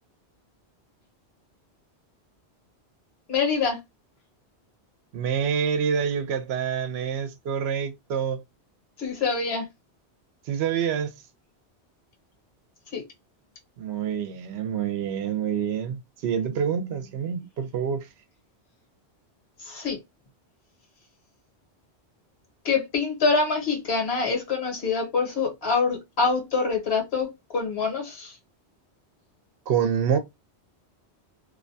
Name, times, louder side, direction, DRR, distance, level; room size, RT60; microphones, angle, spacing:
voice 1, 3.3-3.8 9.0-9.7 12.9-13.0 19.6-20.0 22.6-28.3, left 4 dB, 65° left, 1.3 m, -25 dB
voice 2, 5.1-8.4 10.5-11.1 13.8-18.1 29.7-30.2, right 7 dB, 70° right, 0.8 m, -27 dB
2.6 x 2.2 x 2.5 m
omnidirectional pair, 1.1 m